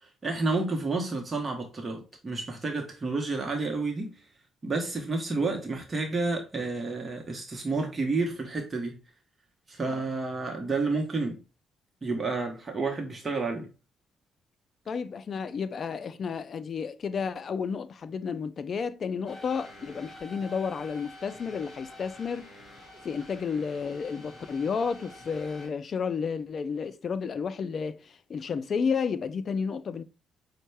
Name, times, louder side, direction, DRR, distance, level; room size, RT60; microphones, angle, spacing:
voice 1, 0.0-4.1 4.6-9.0 9.7-11.4 12.0-13.7, right 3 dB, 30° right, 0.8 m, -30 dB
voice 2, 14.9-22.5 23.0-30.0, left 6 dB, 50° left, 0.3 m, -32 dB
sound 1, 19.3-25.7, left 1 dB, 30° left, 2.0 m, -48 dB
5.2 x 2.1 x 3.2 m
cardioid pair, 90°, 0 cm